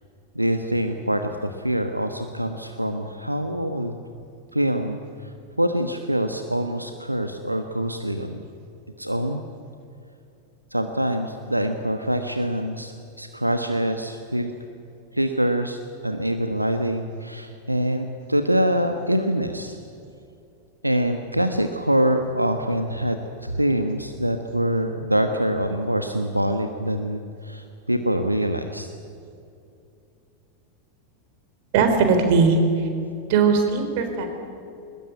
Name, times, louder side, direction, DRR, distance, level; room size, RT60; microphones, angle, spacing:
voice 1, 0.3-4.0 4.5-8.4 9.0-9.4 10.7-14.5 15.1-19.8 20.8-28.9, equal, 90° right, 6 dB, 1.2 m, -25 dB
voice 2, 31.7-32.9 33.3-34.3, right 4 dB, 50° right, 6 dB, 4.1 m, -19 dB
22.0 x 20.5 x 9.8 m, 2.7 s
figure-of-eight pair, 90°, 0 cm